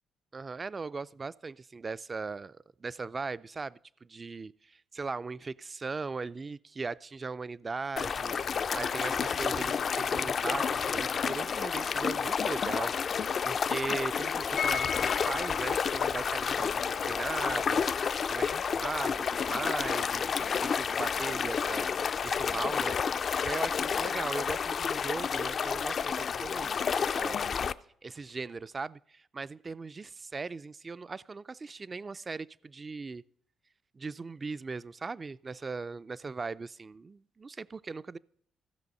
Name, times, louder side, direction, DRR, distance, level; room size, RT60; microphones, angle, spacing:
voice 1, 0.3-13.2 13.4-17.9 18.2-21.9 22.2-23.0 23.4-27.5 28.0-33.2 33.9-38.2, right 4 dB, 30° right, 0.3 m, -39 dB
sound 1, 8.0-27.7, left 6 dB, 50° left, 0.4 m, -30 dB
sound 2, 14.6-20.3 20.6-20.7 20.9-21.0, left 6 dB, 65° left, 0.9 m, -40 dB
15.5 x 6.1 x 5.3 m
cardioid pair, 90°, 0 cm